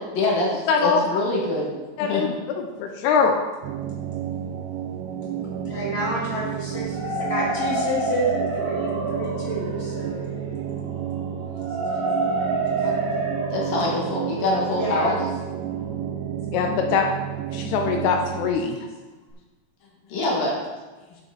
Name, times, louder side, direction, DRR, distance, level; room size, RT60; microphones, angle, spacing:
voice 1, 0.1-1.7 2.0-2.2 13.5-15.2 20.1-20.6, left 2 dB, 60° left, -3 dB, 3.3 m, -24 dB
voice 2, 0.7-1.0 2.0-2.3 2.6-3.4 16.5-17.1 17.5-18.9, left 5 dB, 80° left, 3 dB, 2.5 m, -22 dB
sound 1, 3.6-18.5, right 9 dB, 85° right, 2.8 m, -31 dB
voice 3, 5.6-10.2 12.8-12.9 14.7-15.2, equal, 25° left, -6 dB, 1.3 m, -29 dB
sound 2, 6.7-16.6, right 2 dB, 65° right, 3.3 m, -29 dB
11.0 x 7.5 x 4.1 m, 1.2 s
omnidirectional pair, 5.0 m